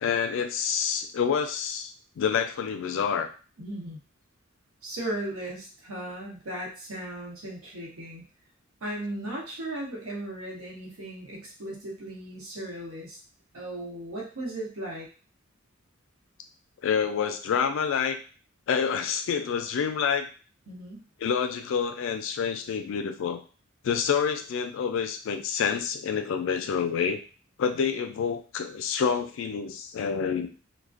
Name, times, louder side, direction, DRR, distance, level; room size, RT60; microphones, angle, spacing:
voice 1, 0.0-3.3 16.8-18.2 18.7-20.3 21.2-23.4 23.8-27.2 27.6-30.5, left 7 dB, 65° left, 7 dB, 0.3 m, -27 dB
voice 2, 3.6-4.0 4.8-8.2 8.8-13.2 13.5-15.1 20.7-21.0, right 1 dB, 90° right, -2 dB, 0.8 m, -36 dB
2.4 x 2.1 x 2.4 m, 0.37 s
head